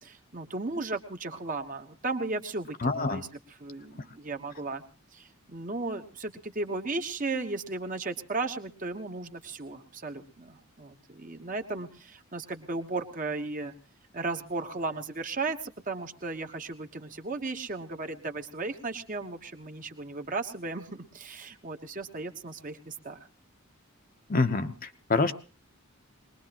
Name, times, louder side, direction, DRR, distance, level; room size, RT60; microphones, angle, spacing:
voice 1, 0.0-4.8 5.1-13.7 14.1-23.2, right 3 dB, 35° right, 5 dB, 1.2 m, -35 dB
voice 2, 2.8-3.2 24.3-25.3, left 3 dB, 40° left, 7 dB, 0.9 m, -26 dB
22.5 x 20.5 x 3.0 m, 0.35 s
head